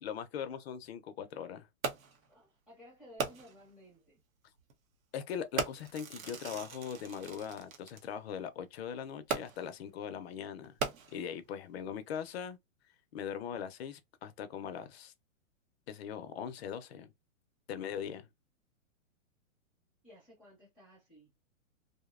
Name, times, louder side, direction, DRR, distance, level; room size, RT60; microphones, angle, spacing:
voice 1, 0.0-1.7 5.1-10.8 11.1-12.6 13.1-15.1 15.9-17.1 17.7-18.3, left 8 dB, 50° left, 0.5 m, -40 dB
Fireworks, 1.8-2.3 3.2-3.7 4.6-4.7 5.6-8.0 9.3-9.8 10.6-11.5 12.2-12.3, right 5 dB, 80° right, 0.8 m, -38 dB
voice 2, 2.3-4.2 20.0-21.3, equal, ahead, 0.7 m, -56 dB
2.6 x 2.1 x 2.3 m
hypercardioid pair, 150°, 41 cm